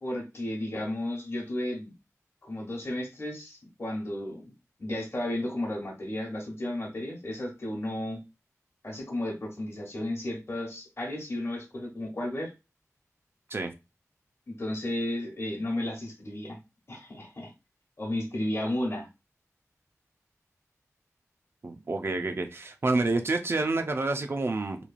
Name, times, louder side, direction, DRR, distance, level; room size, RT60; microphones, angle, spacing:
voice 1, 0.0-1.9 2.4-4.5 4.8-8.2 8.8-12.5 14.5-16.6 16.9-17.5 18.0-19.1, left 1 dB, 50° left, 1.0 m, -33 dB
voice 2, 21.6-24.8, right 3 dB, 45° right, 0.4 m, -28 dB
3.1 x 2.3 x 2.4 m
wide cardioid pair, 85°, 6 cm